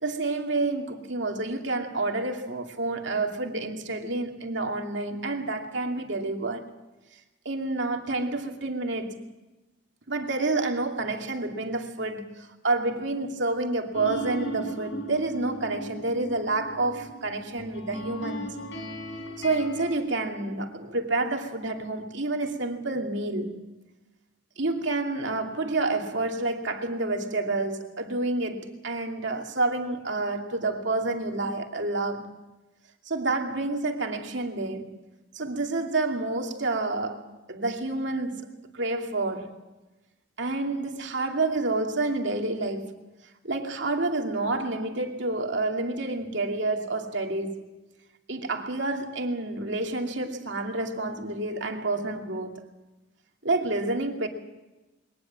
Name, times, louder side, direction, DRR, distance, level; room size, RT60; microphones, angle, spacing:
voice 1, 0.0-6.6 7.4-9.2 10.1-18.5 19.4-23.7 24.6-32.3 33.1-35.0 35.3-38.5 38.7-39.6 40.4-43.0 43.4-47.6 48.3-52.6 53.4-54.3, right 2 dB, 65° right, 2.6 m, -29 dB
sound 1, 13.9-20.0, right 2 dB, 70° left, 4.2 m, -37 dB
22.5 x 19.5 x 7.5 m
head